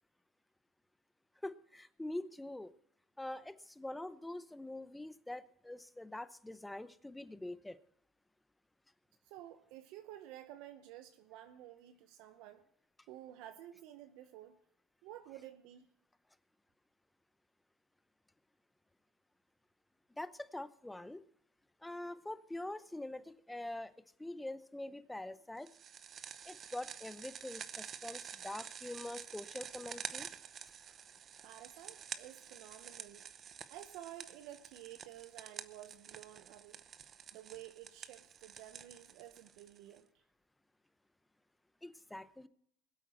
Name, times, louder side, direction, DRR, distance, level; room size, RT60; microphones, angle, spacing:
voice 1, 1.4-2.7 3.2-7.8 20.2-21.2 21.8-23.9 24.2-25.7 26.4-30.3 41.8-42.5, left 1 dB, 5° left, 14 dB, 0.7 m, -44 dB
voice 2, 9.3-12.6 13.1-14.6 15.0-15.9 31.4-33.2 33.7-36.8 37.3-40.1, right 13 dB, 70° right, 9 dB, 0.9 m, -52 dB
sound 1, 25.7-40.0, right 8 dB, 40° right, 0.8 m, -49 dB
21.0 x 8.3 x 4.3 m, 0.68 s
supercardioid pair, 100°, 0 cm